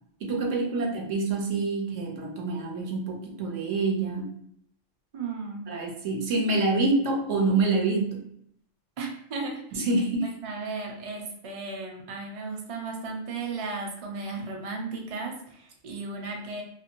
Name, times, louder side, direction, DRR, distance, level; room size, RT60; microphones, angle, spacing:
voice 1, 0.2-4.4 5.7-8.3 9.7-10.3, right 3 dB, 80° right, 0 dB, 1.1 m, -26 dB
voice 2, 5.1-5.7 9.0-9.6 10.4-16.6, right 3 dB, 45° right, 1 dB, 0.4 m, -35 dB
2.5 x 2.5 x 2.9 m, 0.68 s
omnidirectional pair, 1.3 m